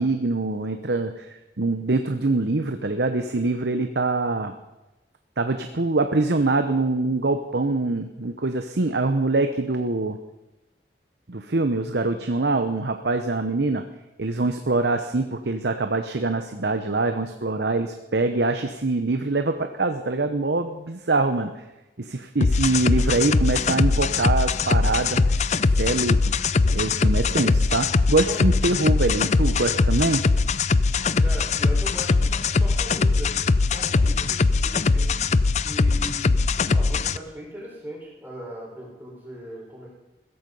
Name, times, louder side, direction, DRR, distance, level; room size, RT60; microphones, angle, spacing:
voice 1, 0.0-4.5 5.4-10.2 11.3-13.8 14.2-21.6 22.0-25.3 25.8-26.3 26.7-30.3, right 2 dB, 70° right, 7 dB, 0.9 m, -24 dB
sound 1, 22.4-37.2, left 4 dB, 40° left, 0.4 m, -21 dB
voice 2, 31.2-33.3 33.7-35.4 35.6-39.9, equal, 10° right, -3 dB, 4.9 m, -39 dB
16.0 x 14.5 x 5.4 m, 1.0 s
head